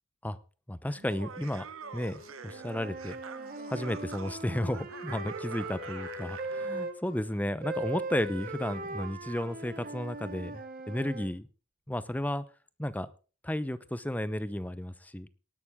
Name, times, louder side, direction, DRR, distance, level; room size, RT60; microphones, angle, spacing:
voice 1, 0.7-1.7 1.9-3.2 3.7-11.5 11.9-12.4 12.8-13.1 13.4-15.3, left 1 dB, 10° left, 15 dB, 0.7 m, -33 dB
Laughter, 1.0-6.6, right 5 dB, 90° right, 1.1 m, -46 dB
Wind instrument woodwind instrument, 1.8-10.2, left 1 dB, 45° left, 2.7 m, -53 dB
Wind instrument woodwind instrument 2, 2.5-6.9 7.6-11.3, right 2 dB, 45° right, 2.1 m, -39 dB
18.5 x 11.0 x 3.6 m, 0.35 s
head